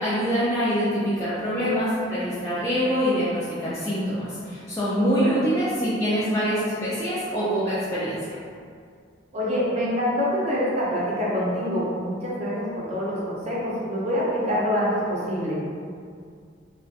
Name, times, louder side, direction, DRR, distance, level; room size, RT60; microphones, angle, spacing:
voice 1, 0.0-8.4, equal, 15° left, -11 dB, 0.3 m, -25 dB
voice 2, 4.9-5.3 9.3-15.6, equal, 35° right, -7 dB, 0.6 m, -26 dB
2.3 x 2.2 x 2.6 m, 2.2 s
head